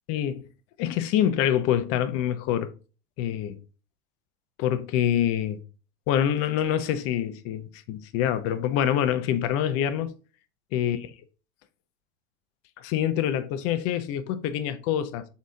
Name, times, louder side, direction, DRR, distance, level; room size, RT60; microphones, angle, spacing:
voice 1, 0.1-0.5 0.8-2.7 3.2-3.6 4.6-5.6 6.1-10.1 10.7-11.0 12.8-15.3, left 10 dB, 45° left, 0.8 m, -26 dB
6.2 x 4.2 x 3.7 m
figure-of-eight pair, 80°, 33 cm